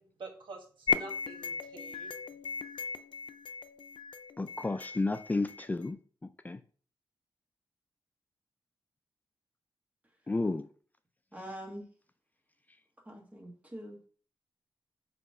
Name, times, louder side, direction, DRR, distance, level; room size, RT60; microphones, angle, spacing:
voice 1, 0.0-2.1, right 2 dB, 90° right, 1.4 m, -47 dB
sound 1, 0.9-5.9, left 5 dB, 90° left, 0.4 m, -37 dB
voice 2, 4.4-6.0 6.4-6.6 10.3-10.7, left 3 dB, 20° left, 0.4 m, -31 dB
voice 3, 11.3-11.8 13.0-14.0, equal, 15° right, 1.5 m, -44 dB
6.8 x 3.0 x 4.8 m
wide cardioid pair, 110°, 8 cm